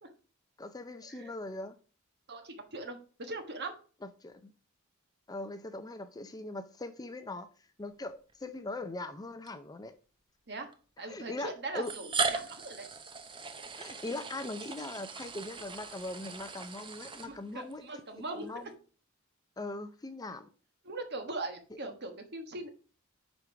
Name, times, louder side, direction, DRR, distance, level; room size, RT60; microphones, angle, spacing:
voice 1, 0.6-1.7 4.2-4.5 5.3-7.5 7.8-10.0 11.1-11.9 13.8-17.8 18.1-18.7 19.6-20.5 21.7-21.8, left 2 dB, 20° left, 0.5 m, -40 dB
voice 2, 2.3-3.7 10.5-10.7 11.0-12.9 17.2-18.7 20.8-22.7, right 2 dB, 50° right, 1.3 m, -40 dB
sound 1, 8.3-8.4 9.5-9.6 10.7-10.8 11.8-17.7, right 4 dB, 25° right, 0.6 m, -38 dB
5.2 x 4.7 x 5.7 m
head